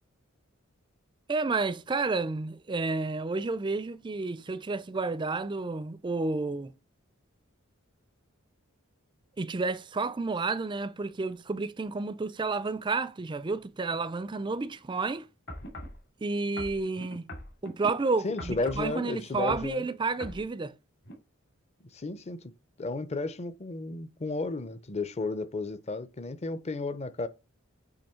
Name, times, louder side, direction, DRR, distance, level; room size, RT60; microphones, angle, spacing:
voice 1, 1.3-6.7 9.4-15.3 16.2-17.3 17.6-20.7, right 3 dB, 20° right, 0.4 m, -31 dB
sound 1, 15.5-16.0 16.6-17.9 18.4-18.9 19.3-19.7 20.2-20.4 21.0-21.1, left 1 dB, 55° left, 2.3 m, -41 dB
voice 2, 18.2-19.8 21.9-22.4 22.8-27.3, left 3 dB, 30° left, 0.6 m, -33 dB
8.8 x 3.1 x 4.4 m
head